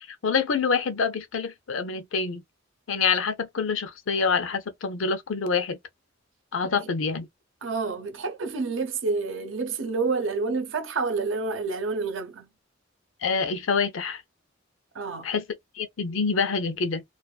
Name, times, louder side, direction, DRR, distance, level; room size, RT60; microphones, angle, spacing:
voice 1, 0.2-2.4 2.9-5.8 6.5-7.3 13.2-14.2 15.2-15.4 15.8-17.0, left 5 dB, 85° left, 0.6 m, -26 dB
voice 2, 7.6-12.5 14.9-15.3, right 4 dB, 75° right, 0.7 m, -29 dB
2.4 x 2.3 x 2.3 m
head